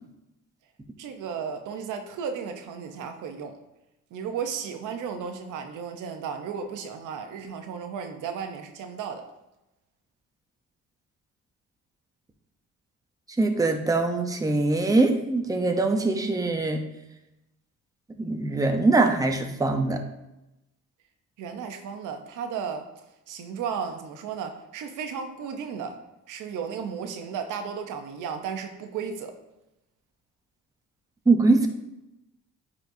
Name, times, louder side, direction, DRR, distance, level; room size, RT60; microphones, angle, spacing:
voice 1, 1.0-3.6 4.1-9.2 21.4-22.8 23.3-26.0 26.3-29.3, right 6 dB, 85° right, 6 dB, 0.8 m, -34 dB
voice 2, 13.4-16.8 18.2-20.0 31.3-31.7, right 3 dB, 10° right, 4 dB, 0.7 m, -22 dB
9.1 x 4.2 x 2.7 m, 0.93 s
cardioid pair, 90°, 30 cm